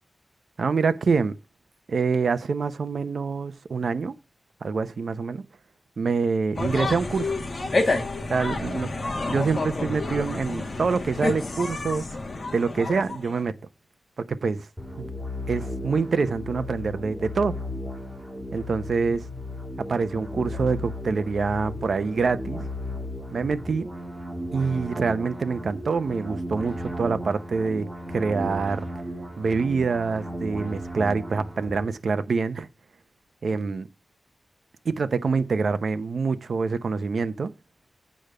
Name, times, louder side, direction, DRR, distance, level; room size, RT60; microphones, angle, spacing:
voice 1, 0.6-1.4 1.9-4.2 4.6-5.4 6.0-7.3 8.3-8.9 9.3-12.1 12.5-13.5 14.2-14.7 15.0-15.1 15.5-17.5 18.5-19.3 19.9-22.7 23.3-23.9 24.5-28.8 29.4-32.7 33.4-33.9 34.8-37.5, right 4 dB, 75° right, 0.7 m, -26 dB
sound 1, 6.5-13.4, left 2 dB, 50° left, 2.1 m, -29 dB
sound 2, 14.8-31.8, left 1 dB, 10° right, 2.7 m, -35 dB
8.7 x 5.1 x 6.7 m
wide cardioid pair, 85°, 0 cm